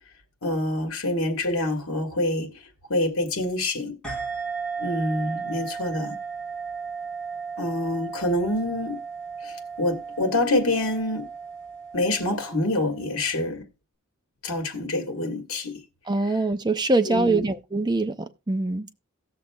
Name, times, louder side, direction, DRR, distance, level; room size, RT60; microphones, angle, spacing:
voice 1, 0.4-2.5 2.9-4.0 4.8-6.1 7.6-9.0 9.4-11.3 11.9-13.6 14.4-15.7 17.0-17.5, left 1 dB, 80° left, 1.8 m, -26 dB
sound 1, 4.0-13.1, right 5 dB, 5° left, 3.8 m, -35 dB
voice 2, 16.1-18.9, right 2 dB, 20° right, 0.6 m, -24 dB
18.0 x 6.5 x 2.3 m
head